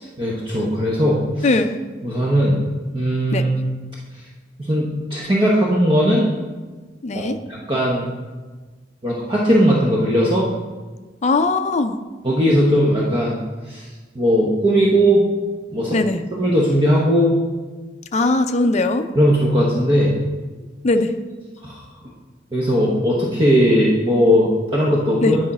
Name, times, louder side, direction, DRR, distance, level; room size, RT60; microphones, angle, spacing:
voice 1, 0.2-1.5 2.0-2.6 2.9-3.5 4.6-6.3 7.1-8.1 9.0-10.5 12.2-13.4 13.7-13.9 14.1-15.2 15.7-16.0 16.3-17.4 18.1-18.2 19.2-20.1 21.6-21.8 22.5-25.4, equal, 30° right, -4 dB, 0.9 m, -18 dB
voice 2, 1.4-1.8 3.3-3.6 7.0-7.4 11.2-12.0 15.9-16.2 18.1-19.1 20.8-21.1 25.2-25.4, left 2 dB, 40° left, 7 dB, 0.4 m, -19 dB
10.0 x 5.0 x 4.2 m, 1.3 s
head